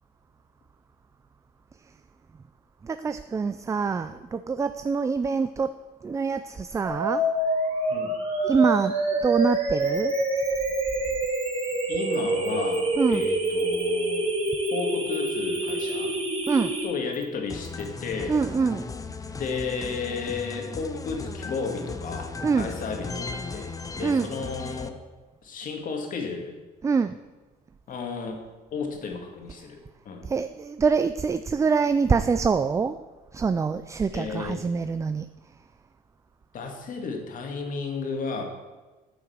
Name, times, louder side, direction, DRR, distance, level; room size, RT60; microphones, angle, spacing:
voice 1, 2.8-5.8 6.0-7.2 8.4-10.1 13.0-13.3 16.5-16.7 18.3-18.9 22.4-22.7 24.0-24.3 26.8-27.2 30.2-33.0 33.3-35.3, right 5 dB, 20° right, 11 dB, 0.3 m, -25 dB
sound 1, 6.9-16.9, right 2 dB, 35° right, 2.9 m, -26 dB
sound 2, 9.8-11.8 12.1-12.2 12.4-12.8 13.1-13.8 14.5-14.7 15.1-15.9 16.4-16.5 17.1-17.2 17.6-17.8, left 1 dB, ahead, 1.6 m, -45 dB
voice 2, 11.9-14.2 14.7-16.1 16.8-18.4 19.4-25.0 25.4-26.5 27.9-29.8 30.1-30.3 34.1-34.6 36.5-38.4, left 4 dB, 55° left, 3 dB, 2.0 m, -33 dB
sound 3, 17.5-24.9, left 4 dB, 20° left, 0.7 m, -36 dB
9.8 x 5.8 x 7.1 m, 1.2 s
cardioid pair, 110°, 17 cm